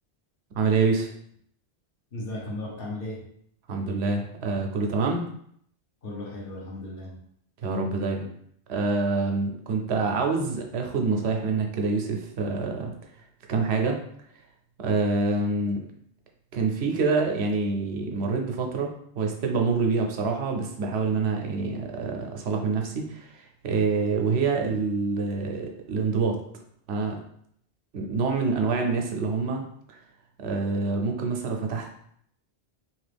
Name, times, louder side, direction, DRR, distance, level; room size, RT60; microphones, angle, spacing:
voice 1, 0.5-1.1 3.7-5.2 7.6-8.3 8.7-12.9 13.5-14.0 14.8-15.9 16.5-26.4 26.9-27.2 27.9-29.6 29.9-30.0 30.4-31.9, right 4 dB, 75° right, 2 dB, 0.8 m, -26 dB
voice 2, 2.1-3.2 6.0-7.2, left 1 dB, 60° left, -3 dB, 1.0 m, -35 dB
2.9 x 2.4 x 3.3 m, 0.67 s
omnidirectional pair, 1.1 m